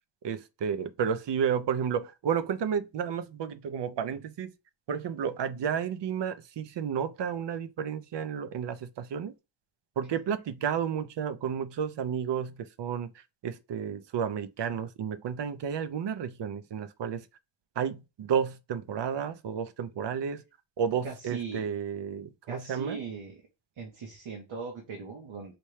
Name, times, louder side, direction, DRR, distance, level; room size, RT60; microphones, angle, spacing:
voice 1, 0.2-4.5 4.9-9.3 10.0-13.1 13.4-17.2 17.8-20.4 20.8-23.0, right 7 dB, 60° right, 0.5 m, -32 dB
voice 2, 21.0-21.7 22.5-23.4 23.8-25.5, right 5 dB, 85° right, 1.0 m, -39 dB
4.3 x 2.2 x 3.1 m
cardioid pair, 65°, 47 cm